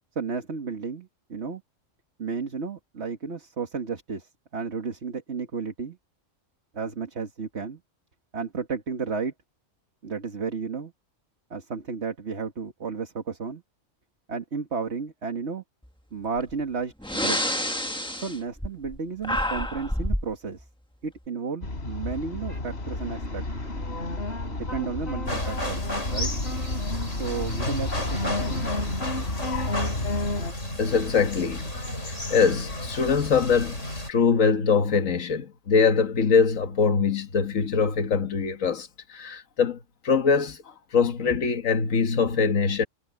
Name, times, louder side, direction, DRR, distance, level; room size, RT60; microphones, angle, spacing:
voice 1, 0.2-1.6 2.2-6.0 6.7-7.8 8.3-9.3 10.0-10.9 11.5-13.6 14.3-15.6 16.1-17.5 18.2-20.7 21.0-23.4 24.5-25.8 26.1-26.3 27.2-28.6, right 5 dB, 60° right, 2.1 m, -33 dB
Breathing, 16.4-16.5 17.0-19.0 19.2-20.3, equal, 5° left, 1.4 m, -28 dB
sound 1, 21.6-30.5, left 2 dB, 55° left, 3.9 m, -31 dB
sound 2, 25.3-34.1, left 1 dB, 70° left, 7.6 m, -33 dB
voice 2, 30.8-31.7 32.0-33.8 34.1-42.8, left 5 dB, 90° left, 1.7 m, -23 dB
omnidirectional pair, 1.3 m